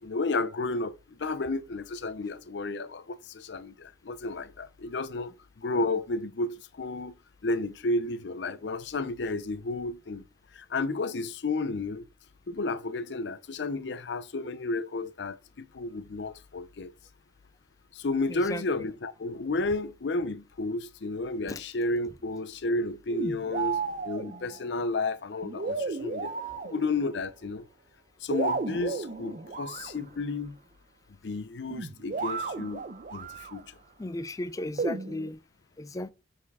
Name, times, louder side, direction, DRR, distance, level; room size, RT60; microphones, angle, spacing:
voice 1, 0.0-5.3 5.6-7.1 7.4-10.2 10.5-12.1 12.5-16.9 17.9-26.3 26.6-27.6 28.2-30.5 31.2-33.7, left 2 dB, 70° left, 0.6 m, -32 dB
voice 2, 18.3-18.6 21.5-21.6 34.0-35.4 35.8-36.1, left 1 dB, 20° left, 0.4 m, -35 dB
sound 1, 23.1-24.7 25.4-27.3 28.3-30.1 31.7-33.6 34.8-35.3, right 4 dB, 45° right, 0.6 m, -34 dB
4.9 x 4.3 x 5.3 m
head